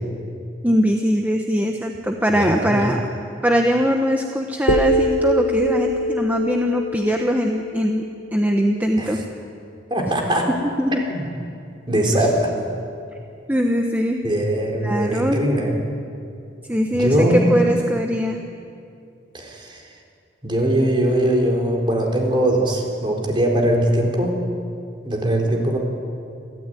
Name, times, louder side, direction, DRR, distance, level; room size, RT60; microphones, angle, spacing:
voice 1, 0.6-3.0 3.4-8.0 8.3-9.2 10.8-11.0 13.5-14.2 14.8-15.4 16.7-18.4, equal, 10° right, 2 dB, 1.2 m, -21 dB
voice 2, 2.3-2.8 9.0-9.2 9.9-10.5 11.1-11.3 11.9-12.5 14.2-15.7 16.9-17.5 19.3-19.8 20.4-24.4 25.0-25.8, right 1 dB, 30° right, 1 dB, 4.1 m, -21 dB
sound 1, 4.7-8.8, equal, 80° left, 1.4 m, -24 dB
28.5 x 14.0 x 9.2 m, 2.5 s
head